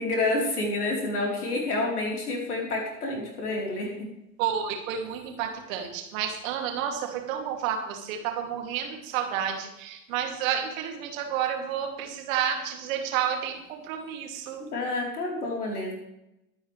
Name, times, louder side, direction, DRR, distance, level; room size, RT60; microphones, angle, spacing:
voice 1, 0.0-4.1 14.6-15.9, left 2 dB, 75° left, -1 dB, 4.4 m, -29 dB
voice 2, 4.4-14.7, right 8 dB, 55° right, 3 dB, 2.9 m, -30 dB
22.5 x 9.4 x 3.4 m, 0.85 s
figure-of-eight pair, 75°, 46 cm